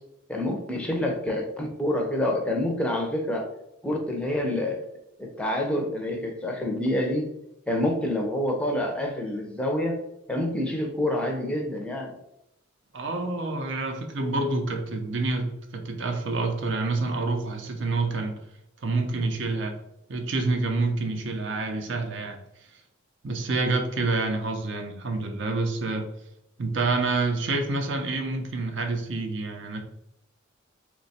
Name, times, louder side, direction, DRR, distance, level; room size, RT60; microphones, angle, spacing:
voice 1, 0.3-3.5 3.8-4.8 5.2-7.3 7.7-10.0 10.3-12.2, left 1 dB, 5° left, 1 dB, 0.5 m, -27 dB
voice 2, 12.9-18.3 18.8-19.7 20.1-22.4 23.2-26.0 26.6-29.8, right 3 dB, 60° right, 4 dB, 0.6 m, -27 dB
3.0 x 2.2 x 4.1 m, 0.83 s
head